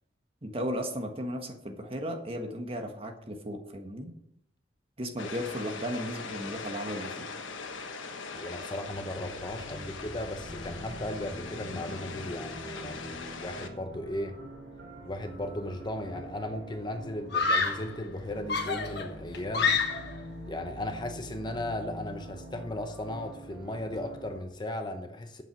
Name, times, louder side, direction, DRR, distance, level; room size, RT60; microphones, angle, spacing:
voice 1, 0.4-4.1 5.0-7.3, equal, 30° right, 3 dB, 1.4 m, -35 dB
sound 1, 5.2-13.7, left 4 dB, 90° left, 1.3 m, -41 dB
voice 2, 8.3-14.4 15.0-19.8 20.5-25.4, left 1 dB, 25° left, 7 dB, 0.8 m, -36 dB
sound 2, 8.9-24.4, equal, 90° right, 3.8 m, -45 dB
Screaming, 15.8-16.2 17.3-17.9 18.5-20.2, left 4 dB, 60° left, 1.4 m, -28 dB
9.1 x 7.6 x 6.0 m, 0.73 s
head